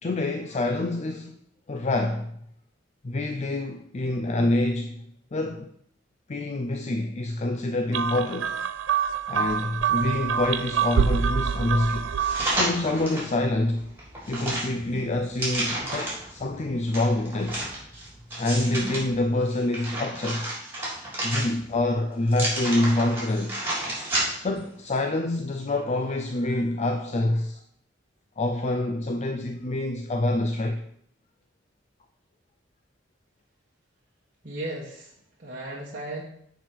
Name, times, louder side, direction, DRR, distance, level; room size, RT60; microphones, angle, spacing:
voice 1, 0.0-1.4 1.7-2.3 3.0-5.0 5.3-5.7 6.3-8.6 9.3-12.1 12.5-13.9 14.3-17.6 18.4-20.5 21.2-23.6 24.4-27.6 28.4-30.8, left 2 dB, 35° left, 0.5 m, -26 dB
sound 1, 7.9-12.7, right 7 dB, 70° right, 0.4 m, -26 dB
sound 2, 12.2-13.3 13.8-16.3 16.9-19.0 19.5-21.8 22.3-24.6 25.0-25.1, right 1 dB, 10° right, 3.4 m, -31 dB
sound 3, 12.5-19.2, equal, 15° left, 2.4 m, -51 dB
voice 2, 34.4-36.2, right 1 dB, 45° right, 1.2 m, -36 dB
7.2 x 4.7 x 6.0 m
head